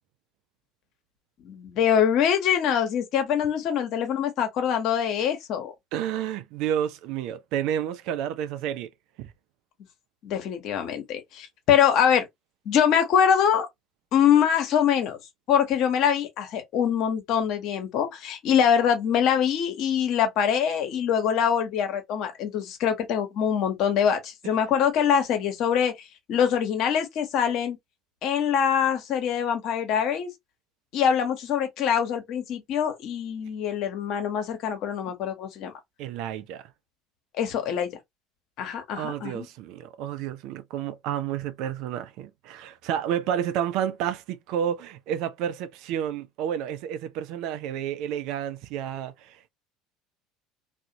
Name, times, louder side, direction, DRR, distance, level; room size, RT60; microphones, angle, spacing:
voice 1, 1.4-5.7 10.2-12.3 12.6-13.7 14.1-15.2 15.5-27.8 28.2-30.3 30.9-35.7 37.3-37.9 38.6-39.5, left 8 dB, 55° left, 0.9 m, -24 dB
voice 2, 5.9-8.9 9.2-9.3 36.0-36.7 39.0-49.5, right 10 dB, 60° right, 0.4 m, -30 dB
2.5 x 2.1 x 2.8 m
figure-of-eight pair, 65°, 0 cm